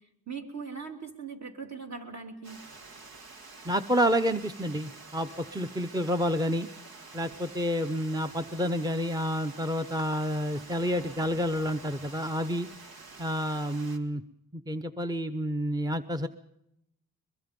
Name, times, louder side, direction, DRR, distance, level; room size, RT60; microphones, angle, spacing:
voice 1, 0.3-2.6, right 5 dB, 50° right, 3 dB, 3.3 m, -40 dB
Water, 2.4-14.0, right 3 dB, 80° right, 2.2 m, -48 dB
voice 2, 3.6-6.7 7.1-12.7 13.2-14.2 14.5-16.3, equal, 10° right, 9 dB, 0.8 m, -29 dB
22.5 x 22.0 x 5.3 m, 0.83 s
cardioid pair, 85°, 35 cm